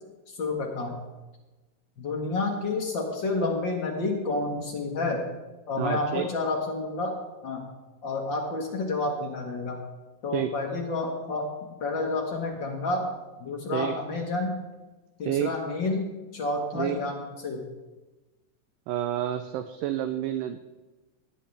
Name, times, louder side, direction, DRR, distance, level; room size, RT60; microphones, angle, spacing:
voice 1, 0.3-1.0 2.0-5.3 5.7-7.1 7.4-7.7 8.0-9.8 10.2-13.1 13.4-14.5 15.2-16.1 16.3-17.6, left 3 dB, 55° left, 0 dB, 1.3 m, -29 dB
voice 2, 5.8-6.3 10.3-10.5 13.7-14.0 15.3-15.5 16.8-17.0 18.9-20.6, right 11 dB, 80° right, 10 dB, 2.0 m, -29 dB
19.5 x 8.4 x 3.3 m, 1.2 s
omnidirectional pair, 4.0 m